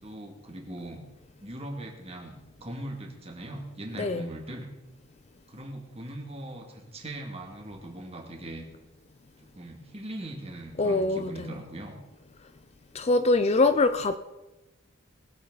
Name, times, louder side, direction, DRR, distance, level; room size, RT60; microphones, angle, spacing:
voice 1, 0.0-1.0 1.4-4.7 5.5-8.6 9.4-12.0, right 1 dB, 30° right, 2.4 m, -40 dB
voice 2, 10.8-11.6 12.9-14.2, left 2 dB, 30° left, 0.5 m, -24 dB
21.0 x 8.3 x 4.0 m
head